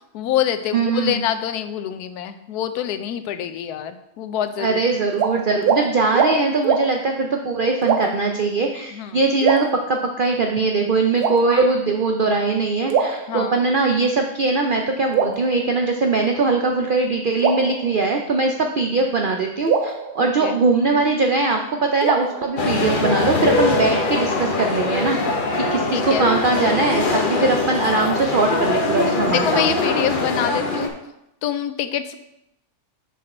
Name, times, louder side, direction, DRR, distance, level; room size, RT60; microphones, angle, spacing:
voice 1, 0.1-4.8 8.9-9.2 13.3-13.6 20.2-20.6 25.9-26.3 29.3-30.9 31.4-32.2, left 10 dB, 85° left, 10 dB, 1.1 m, -25 dB
voice 2, 0.7-1.2 4.6-25.2 25.7-29.7, right 3 dB, 70° right, 3 dB, 0.5 m, -21 dB
sound 1, 5.1-5.3 5.6-5.8 6.1-6.3 6.6-6.8 7.8-8.3 9.4-10.3 11.2-11.9 12.9-13.9 15.1-16.3 17.4-18.6 19.7-21.1 22.0-23.2, right 6 dB, 90° right, 1.3 m, -24 dB
sound 2, 22.6-30.9, left 3 dB, 40° left, 0.9 m, -22 dB
6.5 x 5.4 x 4.2 m, 0.84 s
omnidirectional pair, 1.6 m